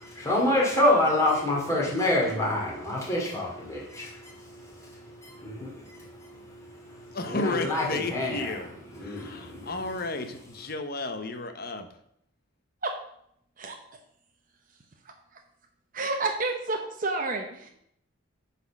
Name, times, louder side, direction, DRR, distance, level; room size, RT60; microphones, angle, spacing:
voice 1, 0.0-8.5 8.9-9.8, left 1 dB, 15° left, -3 dB, 2.5 m, -28 dB
voice 2, 7.1-8.7 9.0-11.9, left 2 dB, 50° left, 8 dB, 0.9 m, -33 dB
voice 3, 15.0-15.4 15.9-17.7, right 3 dB, 40° right, 3 dB, 0.8 m, -30 dB
9.2 x 4.3 x 5.9 m, 0.71 s
head